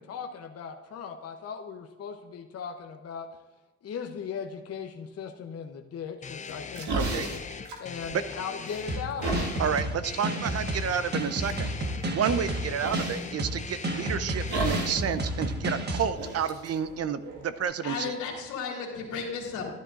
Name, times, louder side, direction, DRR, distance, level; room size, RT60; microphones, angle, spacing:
voice 1, 0.0-3.3 3.8-7.4 7.8-9.5, left 6 dB, 55° left, 3 dB, 0.9 m, -38 dB
sound 1, 6.2-14.9, left 5 dB, 25° left, 0.5 m, -41 dB
sound 2, 6.5-8.3 8.6-9.6 10.4-10.6 11.1-11.6 12.8-13.3 14.5-15.1 15.4-15.5 16.1-17.6, right 2 dB, 70° right, 1.8 m, -33 dB
voice 2, 7.0-7.3 8.1-8.2 9.6-11.7 12.1-18.2, right 7 dB, 55° right, 13 dB, 0.7 m, -30 dB
sound 3, 8.9-16.1, right 1 dB, 35° right, 1.3 m, -31 dB
voice 3, 17.8-19.7, left 5 dB, 85° left, -1 dB, 2.6 m, -34 dB
12.0 x 10.5 x 2.5 m, 1.2 s
cardioid pair, 90°, 30 cm